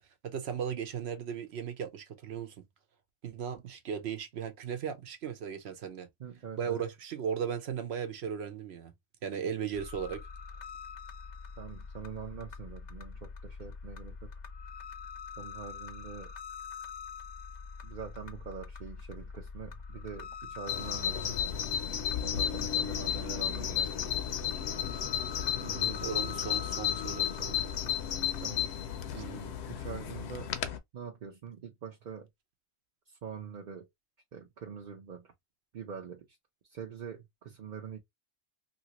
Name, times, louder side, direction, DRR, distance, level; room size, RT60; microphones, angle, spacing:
voice 1, 0.2-2.7 3.2-6.1 6.6-8.9 9.2-10.2 26.0-27.6, right 7 dB, 70° right, 1.0 m, -36 dB
voice 2, 6.2-6.8 11.6-14.3 15.4-16.3 17.8-21.4 22.2-24.0 25.6-26.0 28.4-28.8 29.1-30.5 30.9-32.3 33.1-33.9 34.3-35.3 35.7-36.3 36.7-38.0, right 6 dB, 50° right, 0.7 m, -44 dB
sound 1, 9.7-28.4, left 5 dB, 50° left, 0.6 m, -45 dB
Bird vocalization bird call bird song, 20.7-30.8, left 9 dB, 75° left, 0.8 m, -33 dB
2.8 x 2.8 x 2.9 m
omnidirectional pair, 1.1 m